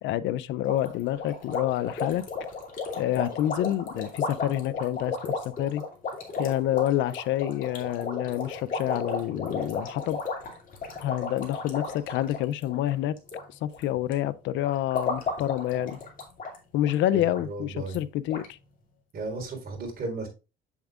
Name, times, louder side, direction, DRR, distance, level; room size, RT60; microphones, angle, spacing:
voice 1, 0.0-2.2 3.0-5.8 6.4-10.2 11.0-13.2 13.6-16.0 16.7-18.6, left 13 dB, 70° left, 0.5 m, -28 dB
sound 1, 0.7-13.4 13.7-14.1 14.6-16.6 16.8-16.9 17.3-17.4 17.9-18.0 18.3-18.5, left 4 dB, 40° left, 2.6 m, -34 dB
voice 2, 17.1-18.0 19.1-20.3, right 3 dB, 50° right, 4.1 m, -35 dB
8.0 x 7.1 x 2.4 m
cardioid pair, 100°, 20 cm